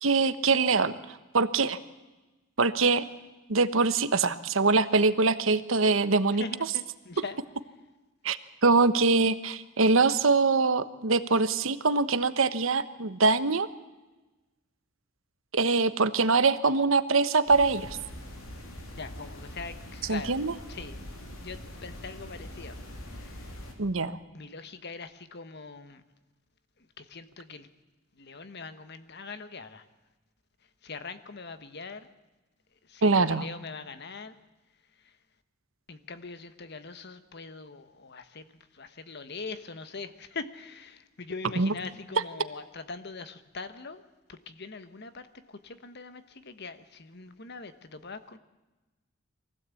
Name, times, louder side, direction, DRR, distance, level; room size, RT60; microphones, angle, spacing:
voice 1, 0.0-0.9 1.3-1.8 2.6-3.0 3.5-6.4 8.2-8.4 8.6-13.7 15.5-18.0 20.1-20.5 23.8-24.2 33.0-33.5 41.6-41.7, right 3 dB, 75° right, 13 dB, 1.1 m, -23 dB
voice 2, 6.3-7.4 19.0-20.4 20.7-21.0 21.4-22.8 23.1-23.5 24.3-26.0 27.0-27.7 28.2-29.8 30.8-32.1 32.9-34.4 35.9-44.0 44.3-48.4, left 4 dB, 55° left, 11 dB, 1.3 m, -42 dB
sound 1, 17.5-23.7, left 1 dB, 90° left, 3.7 m, -43 dB
23.5 x 16.0 x 8.4 m, 1.1 s
head